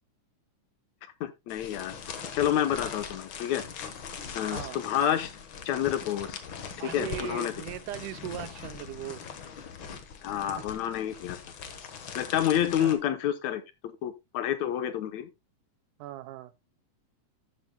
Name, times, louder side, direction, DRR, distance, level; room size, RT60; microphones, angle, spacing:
voice 1, 1.2-1.9 2.3-3.6 4.3-5.3 5.7-6.4 6.8-7.5 10.2-11.4 12.2-15.3, left 10 dB, 75° left, 2.1 m, -29 dB
sound 1, 1.5-12.9, left 6 dB, 55° left, 1.6 m, -41 dB
voice 2, 6.8-9.3 12.5-13.0 16.0-16.5, right 14 dB, 90° right, 2.2 m, -39 dB
13.0 x 8.1 x 2.2 m
omnidirectional pair, 3.5 m